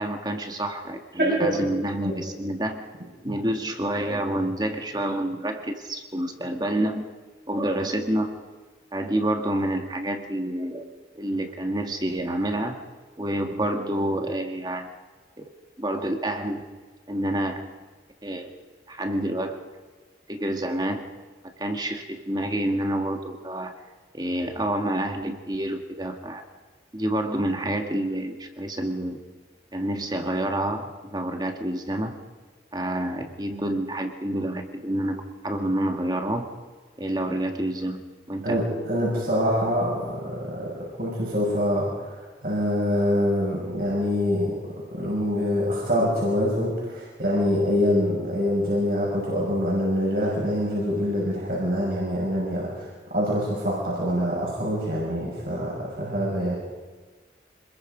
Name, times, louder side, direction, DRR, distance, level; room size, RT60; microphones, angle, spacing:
voice 1, 0.0-2.8 3.2-7.0 7.5-8.3 8.9-10.8 11.2-12.8 13.2-14.9 15.4-15.5 15.8-16.6 17.1-17.6 18.2-18.5 18.9-19.6 20.3-21.0 21.4-23.7 24.1-26.4 26.9-29.2 29.7-32.1 32.7-36.5 37.0-38.0 38.3-38.6, right 1 dB, 25° right, 4 dB, 1.9 m, -28 dB
voice 2, 1.2-1.5 3.2-3.3 38.4-56.5, equal, 55° right, -5 dB, 6.3 m, -25 dB
26.5 x 21.0 x 5.3 m, 1.4 s
head